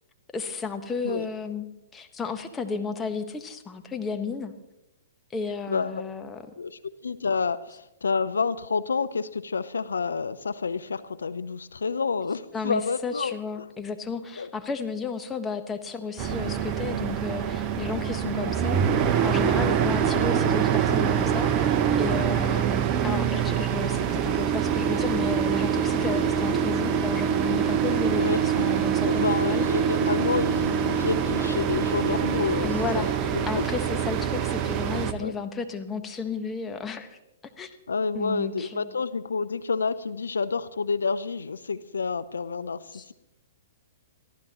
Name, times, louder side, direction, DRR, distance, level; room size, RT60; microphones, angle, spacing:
voice 1, 0.3-1.6 1.9-4.5 5.3-6.4 12.5-29.9 32.6-33.1 33.4-37.2 37.6-37.7 38.1-38.9 42.9-43.1, left 5 dB, 15° left, 6 dB, 1.4 m, -33 dB
voice 2, 5.7-6.0 6.6-13.4 14.4-14.5 18.4-18.5 22.5-22.7 28.1-28.7 29.0-33.1 33.3-33.7 35.2-35.4 37.9-43.1, left 5 dB, 80° left, 14 dB, 0.6 m, -29 dB
sound 1, 16.2-35.1, right 8 dB, 35° right, 1.0 m, -25 dB
23.0 x 14.5 x 3.0 m, 0.91 s
figure-of-eight pair, 115°, 0 cm